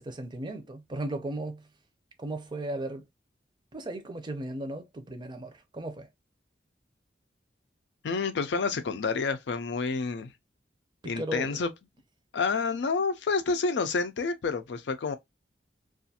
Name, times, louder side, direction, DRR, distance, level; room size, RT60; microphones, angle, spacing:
voice 1, 0.0-1.7 2.2-3.0 3.7-6.1 11.0-11.6, right 1 dB, 25° right, 0.5 m, -36 dB
voice 2, 8.0-10.3 11.1-11.7 12.3-15.2, left 4 dB, 75° left, 0.4 m, -29 dB
2.4 x 2.4 x 2.7 m
head